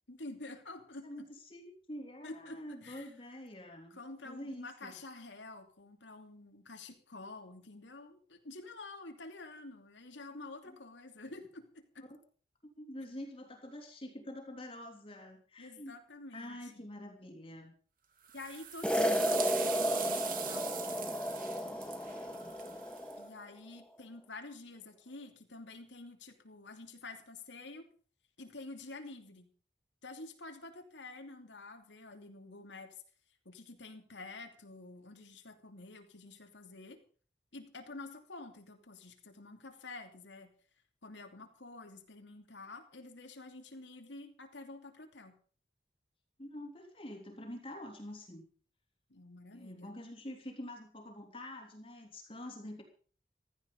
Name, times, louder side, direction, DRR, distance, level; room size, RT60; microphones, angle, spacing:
voice 1, 0.0-1.1 2.2-3.1 3.9-12.1 15.6-16.8 18.3-20.6 23.2-27.9 28.4-29.5 30.0-33.0 33.4-37.0 37.5-40.5 41.0-45.3 49.1-49.9, left 2 dB, 85° left, 4 dB, 2.9 m, -49 dB
voice 2, 1.0-4.9 10.6-10.8 12.1-12.2 12.8-15.9 16.3-17.7 22.1-22.9 46.4-48.4 49.5-52.8, left 1 dB, 30° left, 2 dB, 3.3 m, -46 dB
sound 1, 18.3-23.1, right 9 dB, 50° right, 2.5 m, -41 dB
sound 2, 18.8-23.3, equal, 5° left, 1.3 m, -33 dB
16.0 x 13.5 x 5.5 m, 0.43 s
head